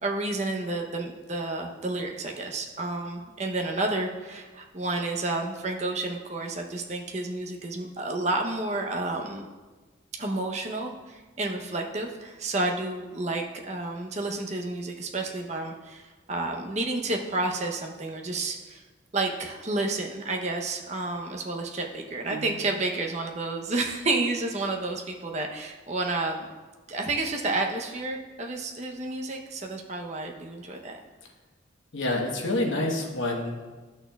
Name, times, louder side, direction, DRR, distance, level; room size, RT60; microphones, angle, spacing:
voice 1, 0.0-9.4 10.1-18.8 19.1-26.5 26.9-31.0, right 2 dB, 35° right, 2 dB, 0.7 m, -30 dB
sound 1, 22.3-23.3, right 7 dB, 80° right, 0.6 m, -43 dB
voice 2, 31.9-33.7, left 2 dB, 85° left, 1 dB, 1.0 m, -28 dB
11.5 x 6.3 x 2.3 m, 1.3 s
head